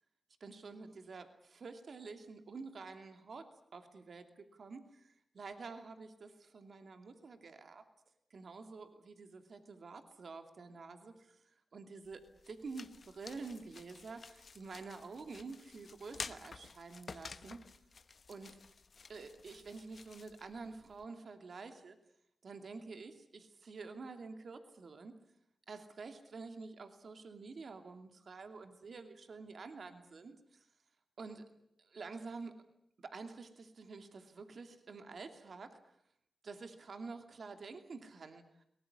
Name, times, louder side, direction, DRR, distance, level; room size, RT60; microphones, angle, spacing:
voice 1, 0.4-7.8 8.3-17.6 18.3-18.6 19.1-22.0 22.4-25.2 25.7-30.7 31.2-31.5 31.8-32.6 33.0-35.9 36.4-38.6, right 4 dB, 70° right, 7 dB, 2.6 m, -49 dB
sound 1, 12.0-21.0, left 5 dB, 65° left, 1.1 m, -52 dB
23.0 x 19.5 x 9.9 m, 0.73 s
cardioid pair, 40°, 0 cm